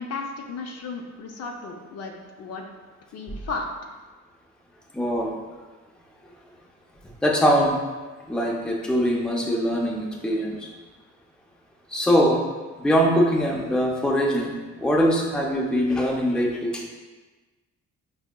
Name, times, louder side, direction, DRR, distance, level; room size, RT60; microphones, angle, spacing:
voice 1, 0.0-2.6 3.1-3.7, left 4 dB, 55° left, 2 dB, 0.5 m, -34 dB
voice 2, 4.9-5.3 7.2-7.8 8.3-10.6 11.9-12.4 12.8-14.5 14.8-16.8, equal, 5° left, -2 dB, 0.5 m, -22 dB
4.7 x 2.7 x 2.2 m, 1.3 s
cardioid pair, 90°, 30 cm